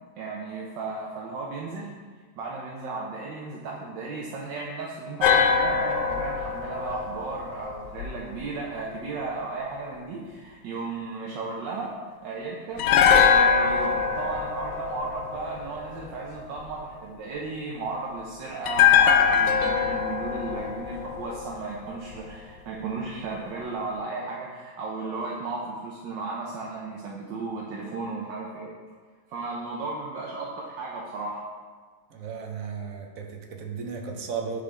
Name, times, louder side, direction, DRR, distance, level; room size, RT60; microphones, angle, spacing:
voice 1, 0.2-1.9 2.3-11.9 12.2-12.9 13.2-28.7 29.3-31.4, right 3 dB, 85° right, -3 dB, 1.4 m, -34 dB
sound 1, 5.2-8.4 12.8-16.0 18.7-21.9 22.1-22.3, left 7 dB, 75° left, 1.1 m, -22 dB
voice 2, 32.1-34.6, right 6 dB, 60° right, 3 dB, 1.0 m, -35 dB
9.7 x 3.8 x 3.3 m, 1.5 s
omnidirectional pair, 1.9 m